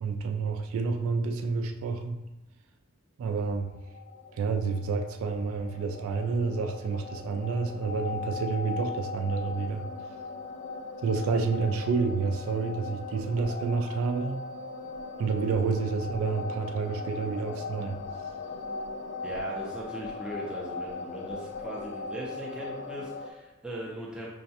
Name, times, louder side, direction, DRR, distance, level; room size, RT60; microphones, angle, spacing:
voice 1, 0.0-2.2 3.2-3.7 4.3-9.8 11.0-14.4 15.2-18.0, right 4 dB, 80° right, 5 dB, 0.3 m, -29 dB
sound 1, 3.8-23.3, left 4 dB, 55° left, 0.3 m, -39 dB
voice 2, 19.2-24.3, right 1 dB, 5° right, -5 dB, 0.5 m, -39 dB
5.4 x 2.1 x 2.7 m, 1.0 s
head